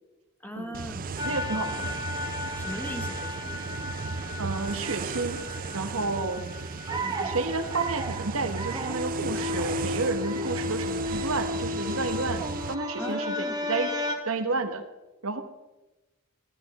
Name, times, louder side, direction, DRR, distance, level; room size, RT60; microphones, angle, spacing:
voice 1, 0.4-1.0 2.5-3.7 7.0-7.4 13.0-13.6, equal, 10° left, 6 dB, 0.9 m, -39 dB
sound 1, 0.7-12.8, right 4 dB, 40° right, 0.5 m, -36 dB
sound 2, 1.2-14.2, left 2 dB, 20° right, 1.3 m, -34 dB
voice 2, 1.2-1.9 4.4-5.4 5.7-6.4 7.2-14.8 15.2-15.4, right 3 dB, 75° right, 8 dB, 1.3 m, -31 dB
14.5 x 12.0 x 4.2 m, 1.0 s
head